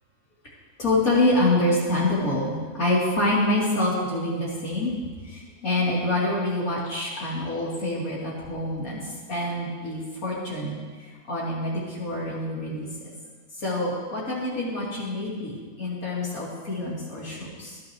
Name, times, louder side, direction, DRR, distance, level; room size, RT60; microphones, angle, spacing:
voice 1, 0.8-4.9 5.2-12.9 13.6-17.8, left 1 dB, 80° left, -6 dB, 4.1 m, -26 dB
20.0 x 11.5 x 3.3 m, 1.4 s
omnidirectional pair, 1.5 m